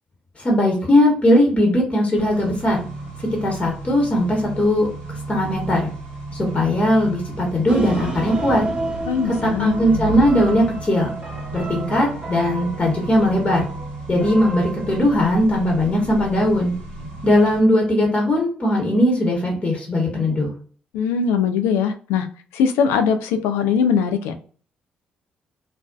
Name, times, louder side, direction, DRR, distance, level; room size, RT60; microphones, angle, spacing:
voice 1, 0.4-2.8 3.4-4.9 5.3-5.9 6.5-8.7 9.4-11.1 11.5-13.7 14.1-16.7 17.2-20.5, left 1 dB, 30° left, 0.9 m, -19 dB
Accelerating revving vroom, 2.2-17.6, right 2 dB, 70° right, 0.9 m, -34 dB
sound 1, 7.7-15.2, right 2 dB, 25° right, 0.8 m, -31 dB
voice 2, 9.1-9.7 20.9-22.3 22.5-24.3, left 6 dB, 75° left, 0.3 m, -20 dB
2.4 x 2.2 x 2.2 m
hypercardioid pair, 45°, 4 cm